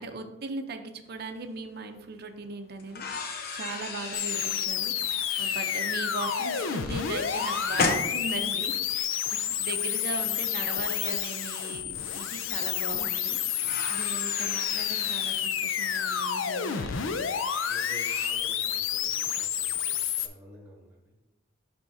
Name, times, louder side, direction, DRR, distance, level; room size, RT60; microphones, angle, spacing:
voice 1, 0.0-13.4 13.9-17.3, right 3 dB, 55° right, 6 dB, 0.6 m, -39 dB
sound 1, 1.5-1.6 2.8-8.8 10.1-10.2 11.9-12.0 12.3-12.4 13.6-18.3, left 4 dB, 50° left, 0.8 m, -36 dB
sound 2, 4.1-20.3, left 9 dB, 80° left, 0.5 m, -30 dB
voice 2, 17.7-21.1, equal, 10° right, -2 dB, 1.7 m, -50 dB
10.5 x 3.5 x 2.7 m, 0.96 s
head